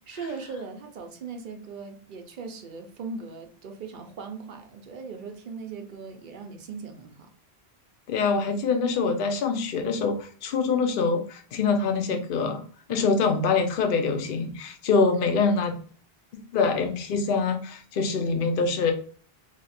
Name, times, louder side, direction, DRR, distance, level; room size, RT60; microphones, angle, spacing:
voice 1, 0.1-7.3 12.9-13.1, right 4 dB, 55° right, 0.7 m, -39 dB
voice 2, 8.1-12.6 12.9-15.7 16.3-18.9, left 4 dB, 60° left, 0.8 m, -25 dB
3.2 x 2.4 x 4.0 m
omnidirectional pair, 1.1 m